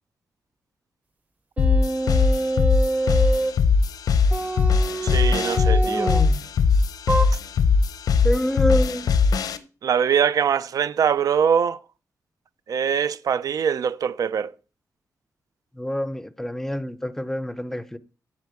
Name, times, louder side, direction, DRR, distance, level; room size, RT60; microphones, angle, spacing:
sound 1, 1.6-9.6, left 5 dB, 85° left, 0.9 m, -20 dB
sound 2, 1.6-3.6 4.3-6.3 7.1-7.3, right 2 dB, 25° right, 0.8 m, -26 dB
voice 1, 5.0-6.1 9.8-11.8 12.7-14.5, right 7 dB, 70° right, 0.6 m, -23 dB
voice 2, 5.8-6.4 8.2-9.1 15.7-18.0, left 1 dB, 5° left, 0.6 m, -27 dB
12.0 x 4.1 x 8.1 m
wide cardioid pair, 145°, 6 cm